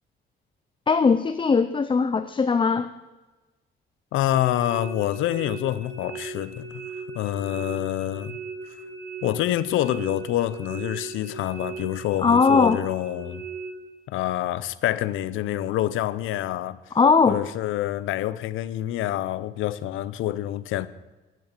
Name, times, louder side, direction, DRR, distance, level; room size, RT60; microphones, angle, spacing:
voice 1, 0.9-2.9 12.2-12.8 17.0-17.4, left 5 dB, 25° left, 0.5 m, -19 dB
voice 2, 4.1-6.8 7.1-8.4 9.2-13.4 14.1-16.8 17.3-20.9, left 13 dB, 90° left, 0.6 m, -27 dB
sound 1, 4.3-13.7, right 4 dB, 70° right, 4.3 m, -38 dB
12.0 x 7.8 x 6.7 m
cardioid pair, 90°, 20 cm